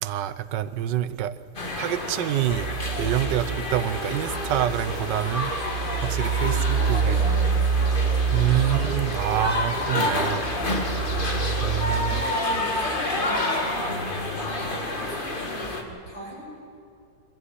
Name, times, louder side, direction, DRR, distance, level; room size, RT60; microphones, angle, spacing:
voice 1, 0.0-1.4 1.8-2.7 3.0-5.5 6.0-7.2 8.3-10.5 11.6-12.2, right 12 dB, 85° right, 1.4 m, -26 dB
sound 1, 1.6-15.8, left 2 dB, 30° left, 1.7 m, -29 dB
sound 2, 2.5-12.2, right 6 dB, 65° right, 0.9 m, -27 dB
sound 3, 3.6-13.3, equal, 50° left, 5.5 m, -45 dB
voice 2, 6.5-8.7 12.0-14.0 14.4-16.4, equal, 80° left, 8.1 m, -38 dB
23.5 x 14.0 x 9.7 m
omnidirectional pair, 1.9 m